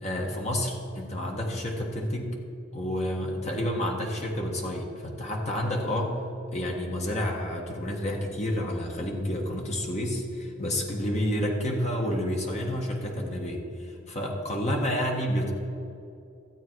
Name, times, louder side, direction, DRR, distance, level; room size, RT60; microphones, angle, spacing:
voice 1, 0.0-2.3 2.7-6.2 6.5-15.5, equal, 35° left, 0 dB, 1.4 m, -29 dB
13.5 x 8.2 x 4.6 m, 2.7 s
head